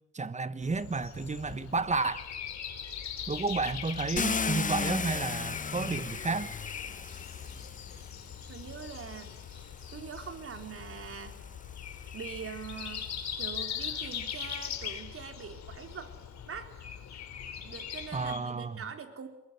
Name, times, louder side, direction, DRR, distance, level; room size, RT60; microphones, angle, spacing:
voice 1, 0.1-2.2 3.3-6.5 18.1-18.8, right 4 dB, 25° right, 1.4 m, -31 dB
Breathing, 0.6-18.4, left 8 dB, 65° left, 3.5 m, -41 dB
Car, 4.2-8.3 9.2-9.3 9.8-13.1, left 5 dB, 25° left, 1.0 m, -36 dB
voice 2, 8.5-9.4 9.9-11.4 12.1-16.1 16.5-16.7 17.6-19.3, right 6 dB, 45° right, 3.9 m, -43 dB
22.5 x 21.5 x 9.6 m
cardioid pair, 90°, 30 cm